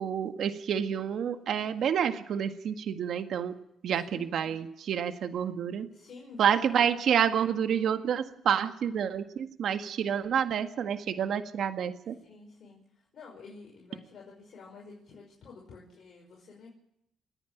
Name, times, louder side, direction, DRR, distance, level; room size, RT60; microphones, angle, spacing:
voice 1, 0.0-3.5 3.8-5.9 6.4-12.2, right 8 dB, 70° right, 8 dB, 1.7 m, -29 dB
voice 2, 4.1-4.5 5.9-6.9 12.2-16.7, left 4 dB, 60° left, -2 dB, 5.8 m, -49 dB
29.0 x 10.0 x 9.4 m, 0.79 s
cardioid pair, 90°, 0 cm